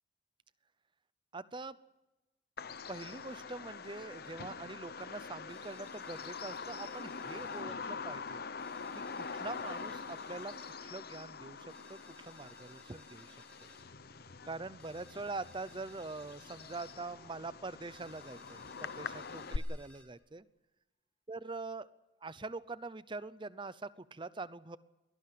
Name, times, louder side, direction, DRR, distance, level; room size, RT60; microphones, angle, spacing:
voice 1, 1.3-1.8 2.9-8.4 8.9-10.5 10.8-13.7 14.4-20.5 21.3-21.9 22.2-24.8, right 3 dB, 25° right, 16 dB, 0.7 m, -44 dB
Bird vocalization bird call bird song, 2.6-19.6, left 5 dB, 55° left, 0.8 m, -44 dB
sound 1, 5.5-7.7 8.6-10.8 11.7-13.9 14.8-17.0 17.9-20.1, left 1 dB, 5° left, 1.9 m, -61 dB
sound 2, 14.9-19.8, left 2 dB, 35° left, 3.7 m, -67 dB
22.0 x 18.0 x 7.8 m, 1.0 s
head